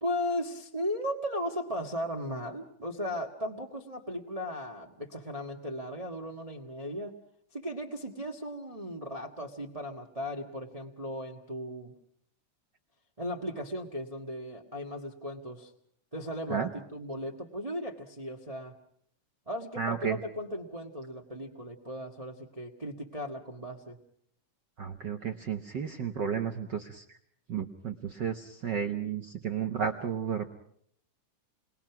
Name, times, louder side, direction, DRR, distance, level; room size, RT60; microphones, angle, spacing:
voice 1, 0.0-7.1 7.5-11.9 13.2-15.7 16.1-18.7 19.5-24.0, equal, 20° right, 2 dB, 0.9 m, -36 dB
voice 2, 19.8-20.2 24.8-27.0 27.5-30.5, right 7 dB, 75° right, 5 dB, 1.0 m, -33 dB
29.0 x 21.5 x 6.0 m, 0.67 s
omnidirectional pair, 3.6 m